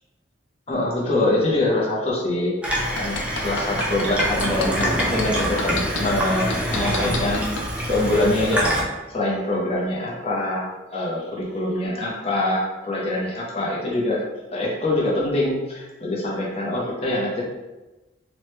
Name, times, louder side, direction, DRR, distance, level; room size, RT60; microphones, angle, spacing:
voice 1, 0.7-2.6 2.9-7.5 7.9-8.7 9.1-14.2 14.5-17.4, left 1 dB, 35° left, -4 dB, 0.7 m, -24 dB
Water tap faucet / Sink (filling or washing), 2.6-8.8, equal, 5° right, 0.5 m, -25 dB
sound 1, 2.8-6.0 6.5-7.7 8.1-8.2, left 4 dB, 90° left, 0.4 m, -29 dB
3.0 x 2.1 x 3.0 m, 1.1 s
head